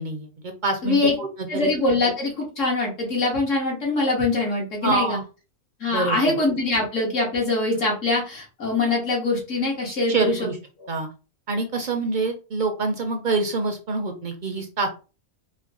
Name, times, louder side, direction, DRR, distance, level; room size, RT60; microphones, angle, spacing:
voice 1, 0.0-1.7 4.8-5.2 5.9-6.2 10.1-10.6 10.9-11.1 11.5-14.9, right 3 dB, 55° right, 5 dB, 0.5 m, -26 dB
voice 2, 0.8-1.1 1.5-5.2 5.8-10.4, left 2 dB, 70° left, -3 dB, 2.0 m, -23 dB
4.3 x 2.1 x 3.6 m, 0.33 s
omnidirectional pair, 1.3 m